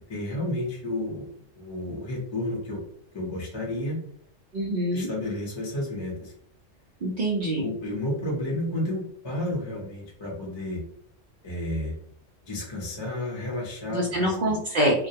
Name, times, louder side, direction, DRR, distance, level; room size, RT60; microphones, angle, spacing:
voice 1, 0.1-1.3 1.6-2.8 3.1-4.0 4.9-6.3 7.6-10.8 11.4-12.0 12.4-14.6, left 1 dB, 30° left, -3 dB, 0.6 m, -31 dB
voice 2, 4.5-5.1 7.0-7.7 13.9-15.1, right 1 dB, 65° right, -2 dB, 0.4 m, -25 dB
2.2 x 2.1 x 2.7 m, 0.65 s
omnidirectional pair, 1.3 m